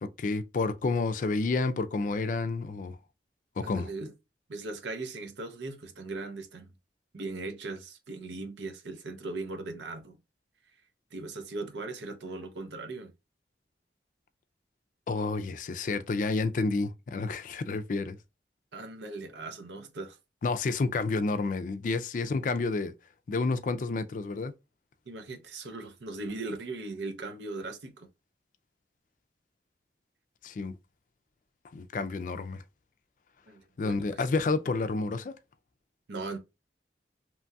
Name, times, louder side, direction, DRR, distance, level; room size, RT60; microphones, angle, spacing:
voice 1, 0.0-3.0 3.6-3.9 15.1-18.2 20.4-22.9 23.3-24.5 30.4-30.7 31.7-32.6 33.8-35.3, left 3 dB, 45° left, 0.3 m, -30 dB
voice 2, 3.6-4.1 4.5-6.7 7.1-10.2 11.1-13.1 18.7-20.2 25.1-28.1 33.5-34.2 36.1-36.4, right 3 dB, 85° right, 0.7 m, -39 dB
3.0 x 2.3 x 2.6 m
head